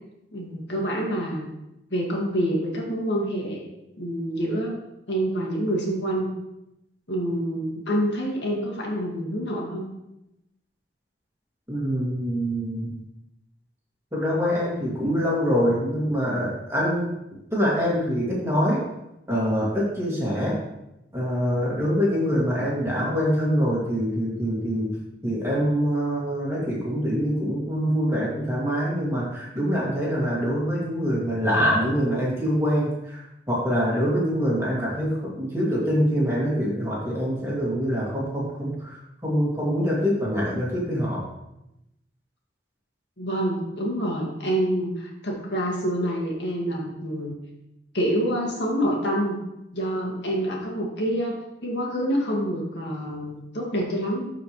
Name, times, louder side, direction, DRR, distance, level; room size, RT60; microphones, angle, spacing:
voice 1, 0.3-1.5 1.9-3.6 4.0-4.8 5.1-6.3 7.1-9.8 43.2-47.3 47.9-49.4 49.7-51.4 51.6-54.3, equal, 80° left, -2 dB, 2.1 m, -27 dB
voice 2, 11.7-13.0 14.1-17.1 17.5-18.8 19.3-20.6 21.1-25.0 25.2-41.3, equal, 15° right, -6 dB, 2.3 m, -25 dB
12.0 x 4.9 x 3.2 m, 0.88 s
head